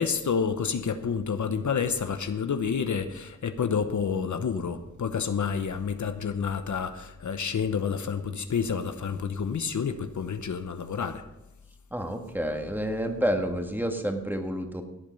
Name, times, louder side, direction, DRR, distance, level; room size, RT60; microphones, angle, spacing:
voice 1, 0.0-11.2, left 6 dB, 70° left, 0.9 m, -29 dB
voice 2, 11.9-14.8, equal, 5° right, 1.8 m, -29 dB
16.5 x 8.7 x 5.4 m
wide cardioid pair, 85°, 31 cm